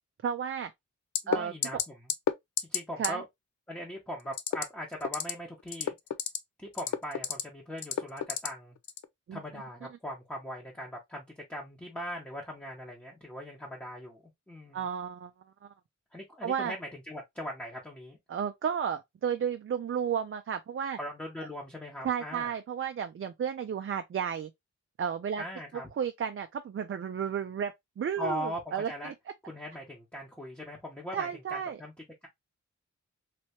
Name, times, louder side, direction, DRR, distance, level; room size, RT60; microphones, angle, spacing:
voice 1, 0.2-0.7 1.3-1.8 3.0-3.2 9.3-9.4 14.7-15.3 15.6-15.7 16.4-16.7 18.3-21.0 22.0-24.5 25.0-25.4 26.0-29.1 31.1-31.8, right 8 dB, 45° right, 0.4 m, -33 dB
sound 1, 1.1-1.4 1.6-1.8 2.1-2.3 2.6-2.8 3.0-3.1 4.3-4.6 5.0-5.3 5.7-6.4 6.7-7.4 7.8-8.5 8.9-9.0, left 9 dB, 70° left, 0.5 m, -29 dB
voice 2, 1.2-2.0 2.6-3.2 3.7-6.0 6.6-8.8 9.3-14.8 16.1-18.2 21.0-22.5 25.4-25.9 28.2-29.1 29.5-31.9, equal, 5° left, 0.9 m, -40 dB
3.3 x 2.9 x 2.9 m
wide cardioid pair, 130°, 30 cm